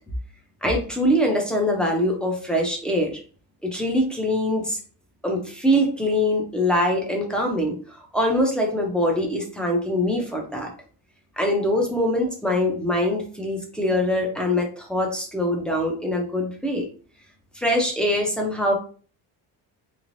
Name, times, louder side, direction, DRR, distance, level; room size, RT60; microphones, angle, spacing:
voice 1, 0.6-3.2 3.6-4.8 5.2-10.7 11.4-16.9 17.6-18.7, left 1 dB, ahead, 0 dB, 0.4 m, -23 dB
3.3 x 3.2 x 2.5 m, 0.41 s
cardioid pair, 180°, 41 cm